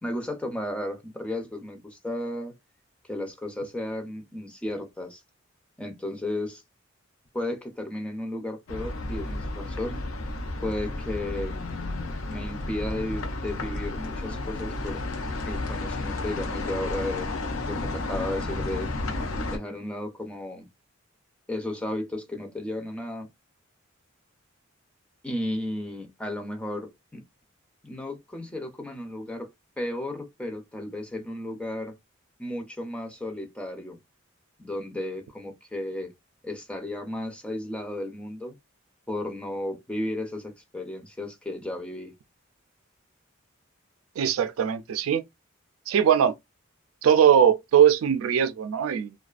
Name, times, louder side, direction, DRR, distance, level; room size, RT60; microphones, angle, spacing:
voice 1, 0.0-2.5 3.0-5.2 5.8-6.6 7.3-10.0 10.6-11.6 12.3-15.0 15.5-17.3 17.7-18.9 19.5-20.7 21.5-23.3 25.2-27.2 27.8-29.5 29.8-32.0 32.4-34.0 34.6-36.1 36.4-38.6 39.1-42.1, left 1 dB, 5° left, 0.4 m, -34 dB
sound 1, 8.7-19.6, left 2 dB, 85° left, 0.5 m, -32 dB
voice 2, 44.2-45.2 45.9-46.3 47.0-49.1, right 8 dB, 90° right, 0.4 m, -20 dB
2.4 x 2.2 x 2.3 m
head